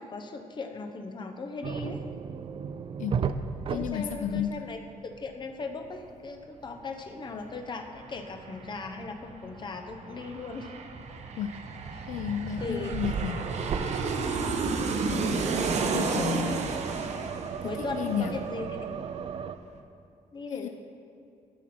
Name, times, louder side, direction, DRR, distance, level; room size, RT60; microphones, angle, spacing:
voice 1, 0.0-2.0 3.7-4.8 5.0-10.7 11.9-12.2 12.6-12.9 15.0-15.4 15.7-16.3 17.6-18.8 20.3-20.7, left 3 dB, 35° left, 5 dB, 0.9 m, -38 dB
sound 1, 1.6-4.9 5.1-5.4 8.8-8.9 11.2-11.7 12.2-14.2 14.5-14.8 15.7-19.6, right 6 dB, 40° right, 0.4 m, -35 dB
voice 2, 3.7-4.5 11.4-11.5 12.1-13.5 14.6-14.8 15.5-16.6 17.6-18.3 20.5-20.7, left 9 dB, 70° left, 8 dB, 0.4 m, -32 dB
Aircraft, 7.3-7.4 7.6-19.0 19.3-19.4, right 4 dB, 60° right, 0.8 m, -32 dB
13.5 x 6.0 x 4.3 m, 2.6 s
cardioid pair, 130°, 13 cm